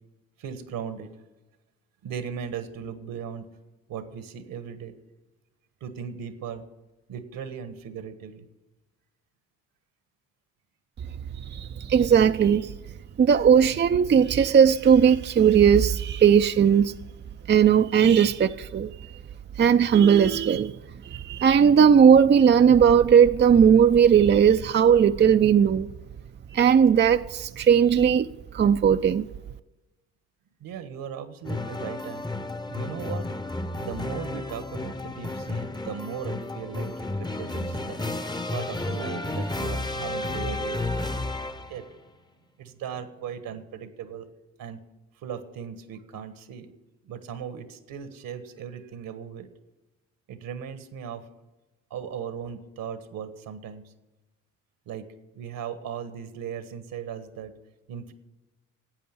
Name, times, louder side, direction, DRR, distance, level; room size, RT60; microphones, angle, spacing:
voice 1, 0.4-1.1 2.0-3.5 3.9-4.9 5.8-6.6 7.1-8.5 30.6-32.2 32.6-33.3 33.8-38.0 38.5-41.9 42.6-44.3 44.6-44.8 45.2-46.7 47.1-49.5 50.3-51.3 51.9-53.9 54.9-55.1 55.3-57.5 57.9-58.1, right 7 dB, 70° right, 1.4 m, -37 dB
voice 2, 11.4-12.7 13.2-16.9 17.5-18.9 19.6-20.7 21.0-25.9 26.5-28.3 28.5-29.3, right 7 dB, 30° right, 0.5 m, -18 dB
sound 1, 31.4-41.9, left 2 dB, 10° left, 0.8 m, -32 dB
12.0 x 8.5 x 9.8 m
hypercardioid pair, 55°, 35 cm